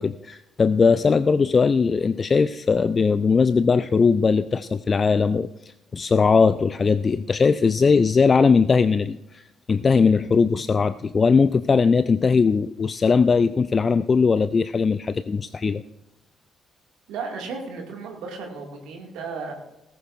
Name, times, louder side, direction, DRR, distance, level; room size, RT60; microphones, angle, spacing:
voice 1, 0.0-15.8, left 5 dB, 35° left, 14 dB, 0.4 m, -20 dB
voice 2, 17.1-19.5, right 4 dB, 65° right, 1 dB, 2.0 m, -34 dB
18.5 x 15.0 x 2.5 m, 0.93 s
figure-of-eight pair, 40°, 0 cm